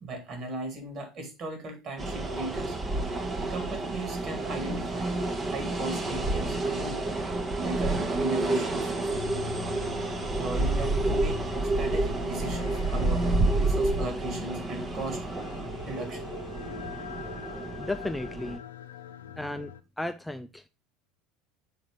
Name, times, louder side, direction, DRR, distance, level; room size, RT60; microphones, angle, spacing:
voice 1, 0.0-2.8 3.5-9.1 10.4-11.4 11.8-15.2 15.8-16.3, right 1 dB, 45° right, 2.0 m, -38 dB
sound 1, 2.0-18.6, right 2 dB, 30° right, 0.9 m, -29 dB
sound 2, 9.1-19.8, left 10 dB, 75° left, 0.4 m, -43 dB
voice 2, 17.8-18.6 19.4-20.7, left 2 dB, 5° left, 0.3 m, -35 dB
5.3 x 3.9 x 4.7 m
figure-of-eight pair, 70°, 0 cm